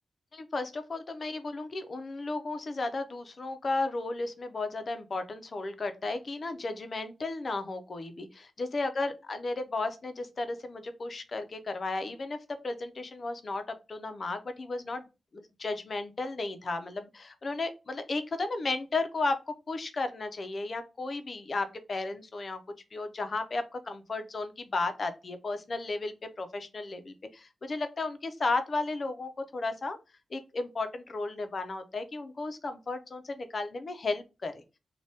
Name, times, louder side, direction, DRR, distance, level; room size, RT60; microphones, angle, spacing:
voice 1, 0.3-12.4 12.6-15.1 15.3-22.6 22.9-30.0 30.3-34.6, left 3 dB, 40° left, 8 dB, 0.4 m, -34 dB
2.7 x 2.1 x 3.3 m, 0.28 s
wide cardioid pair, 170°, 0 cm